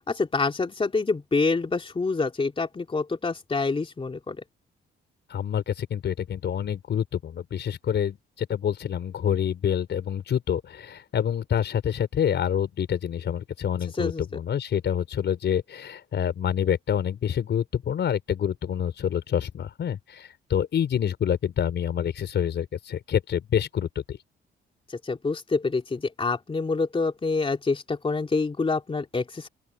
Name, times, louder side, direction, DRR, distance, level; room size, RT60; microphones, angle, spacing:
voice 1, 0.1-4.4 13.9-14.2 24.9-29.5, left 3 dB, 25° left, 3.4 m, -27 dB
voice 2, 5.3-24.2, left 9 dB, 60° left, 5.0 m, -27 dB
open air
cardioid pair, 90°, 20 cm